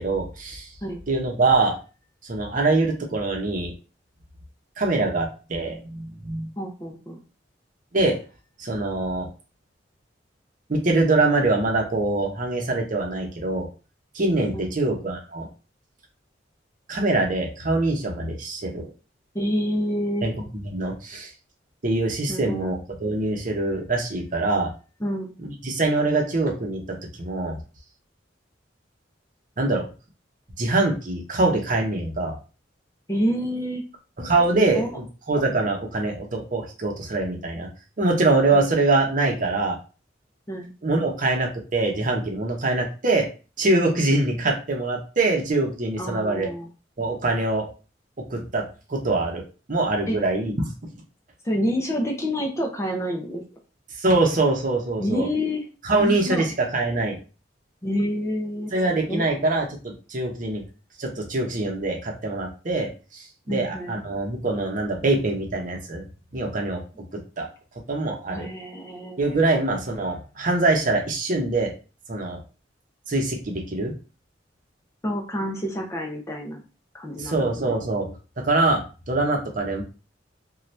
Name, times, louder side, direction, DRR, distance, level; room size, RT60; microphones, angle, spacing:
voice 1, 0.0-0.7 1.1-1.8 2.2-3.7 4.8-6.5 7.9-8.2 8.6-9.3 10.7-13.7 14.1-15.5 16.9-18.9 20.2-20.3 20.6-21.3 21.8-24.7 25.4-26.8 27.2-27.6 29.6-29.8 30.6-32.3 34.2-37.7 38.0-39.8 40.8-43.3 43.6-46.5 47.0-47.7 48.3-48.6 48.9-49.4 49.7-50.7 53.9-55.3 55.8-57.2 58.7-60.6 61.0-66.0 66.3-66.8 67.4-67.5 67.9-68.5 69.2-71.7 72.1-72.4 73.1-73.9 77.2-78.1 78.4-79.8, right 2 dB, 45° right, 2 dB, 0.7 m, -24 dB
voice 2, 6.6-7.2 14.5-14.7 19.3-20.3 22.3-22.7 25.0-25.3 33.1-33.8 34.5-34.9 38.5-38.6 40.5-40.7 46.0-46.7 50.1-50.2 51.4-53.4 55.0-55.6 56.0-56.5 57.8-59.3 63.5-64.0 68.3-69.2 75.0-76.6 76.9-77.8, equal, 15° left, 1 dB, 0.5 m, -28 dB
2.7 x 2.3 x 3.2 m, 0.33 s
head